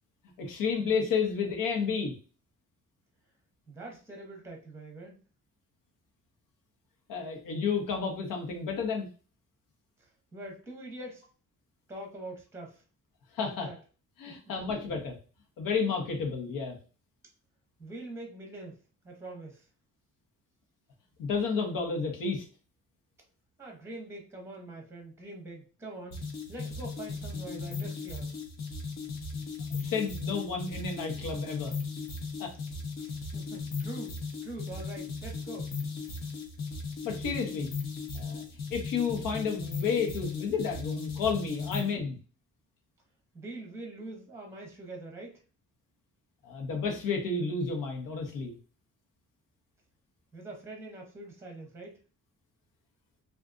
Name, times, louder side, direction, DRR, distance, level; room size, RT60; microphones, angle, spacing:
voice 1, 0.4-2.1 7.1-9.1 13.3-13.7 14.2-15.1 15.6-16.7 21.2-22.4 29.7-31.7 32.4-32.5 37.0-37.7 38.1-38.4 38.7-42.2 46.4-48.5, left 5 dB, 90° left, 2 dB, 1.0 m, -31 dB
voice 2, 3.7-5.2 10.0-11.2 11.9-12.8 13.4-13.8 14.3-14.5 17.8-19.7 23.6-28.4 33.0-35.7 41.7-42.1 43.3-45.4 50.3-52.0, right 2 dB, 10° right, 1 dB, 0.8 m, -44 dB
sound 1, 26.1-42.0, left 4 dB, 55° left, 0.8 m, -37 dB
3.6 x 2.5 x 2.5 m, 0.36 s
cardioid pair, 170°, 32 cm